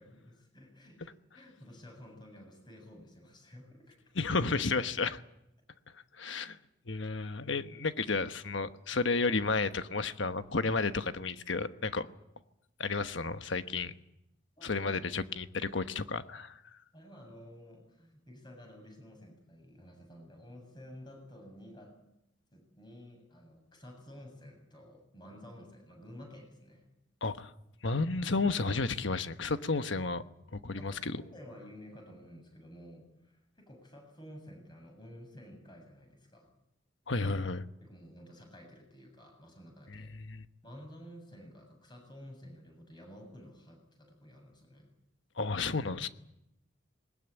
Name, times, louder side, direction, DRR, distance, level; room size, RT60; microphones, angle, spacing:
voice 1, 0.0-4.0 14.6-14.9 16.9-21.9 22.5-26.8 30.8-36.5 37.8-40.1 40.6-44.9, equal, 20° left, 7.5 m, -52 dB
voice 2, 4.1-5.2 6.2-6.6 6.9-12.1 12.8-13.9 14.6-16.5 27.2-27.5 27.8-30.2 30.5-31.2 37.1-37.6 39.9-40.4 45.4-46.1, left 3 dB, 70° left, 1.2 m, -32 dB
20.5 x 20.0 x 9.0 m
head